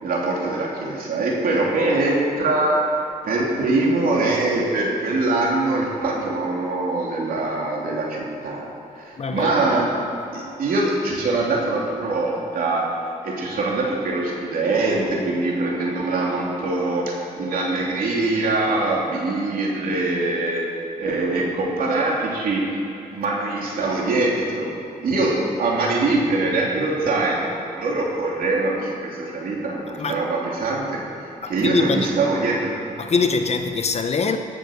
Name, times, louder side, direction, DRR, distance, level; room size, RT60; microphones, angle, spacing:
voice 1, 0.0-2.7 3.2-8.6 9.0-9.9 10.3-12.8 13.2-20.7 21.0-22.8 23.1-24.7 25.0-32.7, right 2 dB, 80° right, -3 dB, 2.9 m, -23 dB
voice 2, 9.2-9.5 29.9-30.2 31.4-32.2 33.0-34.4, left 4 dB, 45° left, 7 dB, 1.0 m, -23 dB
18.0 x 6.7 x 6.5 m, 2.7 s
cardioid pair, 90°, 15 cm